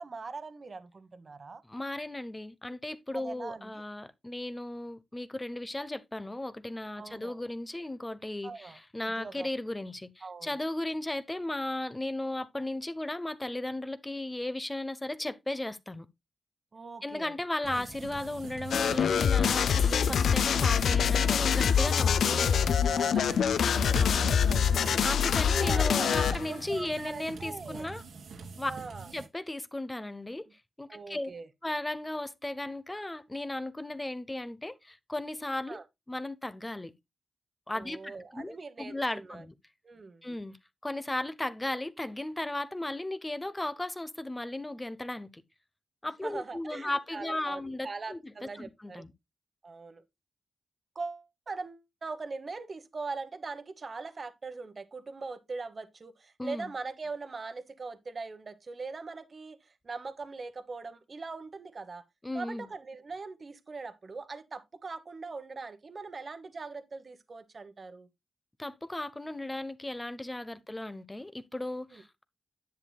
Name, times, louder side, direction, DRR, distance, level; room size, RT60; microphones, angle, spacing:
voice 1, 0.0-1.6 3.1-3.8 7.0-7.4 8.4-8.8 9.2-9.5 10.2-10.5 16.7-17.3 17.6-17.8 22.2-24.7 25.3-26.1 26.5-27.9 28.7-29.1 30.9-31.5 35.7-35.8 37.7-39.4 39.8-40.2 46.2-49.0 49.6-50.0 50.9-62.0 62.3-68.1 70.5-70.6 71.9-72.0, right 4 dB, 40° right, 1.3 m, -41 dB
voice 2, 1.6-16.1 17.0-22.4 24.0-24.3 25.0-28.0 28.6-28.7 29.1-30.5 30.8-31.3 31.6-35.8 36.1-36.9 37.7-39.5 40.2-40.6 40.8-45.4 46.0-49.1 56.4-56.7 62.2-62.7 68.6-72.3, left 1 dB, 15° left, 0.8 m, -36 dB
sound 1, 17.6-29.3, right 4 dB, 90° right, 2.0 m, -43 dB
sound 2, 18.7-26.5, left 7 dB, 85° left, 0.4 m, -25 dB
10.5 x 8.2 x 2.3 m
wide cardioid pair, 105°, 0 cm